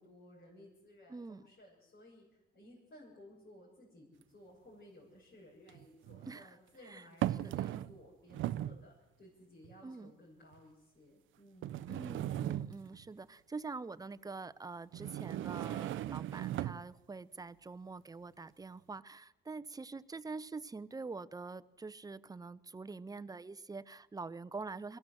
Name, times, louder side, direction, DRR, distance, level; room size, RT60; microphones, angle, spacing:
voice 1, 0.0-11.9, left 1 dB, 55° left, -6 dB, 6.5 m, -58 dB
voice 2, 1.1-1.4 6.3-6.6 6.8-7.1 7.4-7.8 9.8-10.1 11.9-25.0, right 4 dB, 20° right, 15 dB, 0.7 m, -45 dB
sound 1, 4.2-4.3 5.7-6.4 7.2-8.0 8.3-8.8 9.6-9.7 10.5-10.6 11.6-13.0 14.9-16.9, right 13 dB, 80° right, 0.6 m, -37 dB
22.5 x 15.0 x 7.6 m, 1.0 s
cardioid pair, 90°, 20 cm